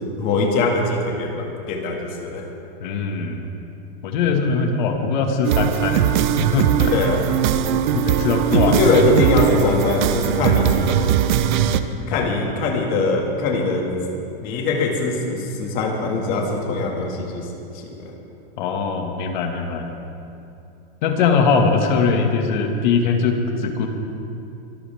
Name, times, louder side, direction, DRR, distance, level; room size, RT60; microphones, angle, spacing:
voice 1, 0.0-2.4 6.9-7.2 8.5-11.1 12.1-13.9 14.4-17.5 17.8-18.1, left 3 dB, 30° left, 1 dB, 2.1 m, -22 dB
voice 2, 2.8-3.5 4.0-6.1 6.4-6.9 7.7-8.8 12.1-12.3 18.6-19.9 21.0-23.9, left 5 dB, 50° left, 3 dB, 2.0 m, -21 dB
sound 1, 5.4-11.8, right 9 dB, 50° right, 0.8 m, -20 dB
24.5 x 13.5 x 3.6 m, 2.7 s
supercardioid pair, 165°, 30 cm